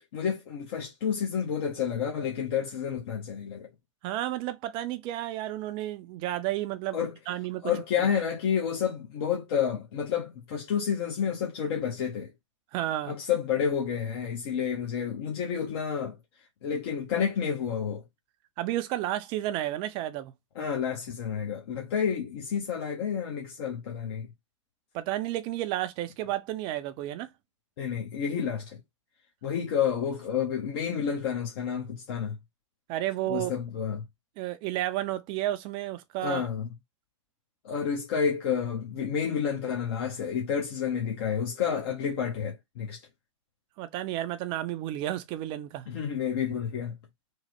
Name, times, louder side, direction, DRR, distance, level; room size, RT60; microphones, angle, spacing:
voice 1, 0.0-3.7 6.9-7.1 7.6-12.3 13.1-16.2 16.6-18.0 20.6-24.3 27.8-28.8 29.4-32.4 33.3-34.0 36.2-36.7 37.6-43.0 45.9-46.9, left 7 dB, 50° left, 0.7 m, -30 dB
voice 2, 4.0-7.0 7.3-7.6 8.0-8.1 12.7-13.1 18.6-20.3 24.9-27.3 32.9-33.5 34.4-36.4 43.8-45.9, right 14 dB, 30° right, 0.4 m, -32 dB
3.0 x 2.0 x 3.0 m
figure-of-eight pair, 110°, 17 cm